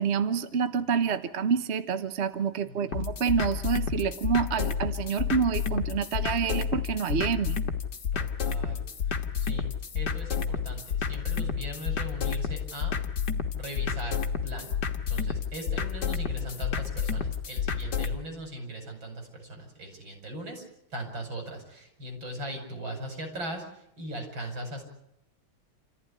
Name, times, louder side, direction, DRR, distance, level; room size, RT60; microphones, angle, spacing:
voice 1, 0.0-7.6, right 6 dB, 40° right, 10 dB, 1.0 m, -28 dB
voice 2, 2.6-3.0 8.1-9.7 9.9-13.0 13.5-14.8 15.1-20.6 20.9-24.8, right 1 dB, 70° right, 4 dB, 6.4 m, -39 dB
sound 1, 2.9-18.2, left 6 dB, 60° left, 2.0 m, -30 dB
27.5 x 15.0 x 9.9 m, 0.79 s
omnidirectional pair, 2.2 m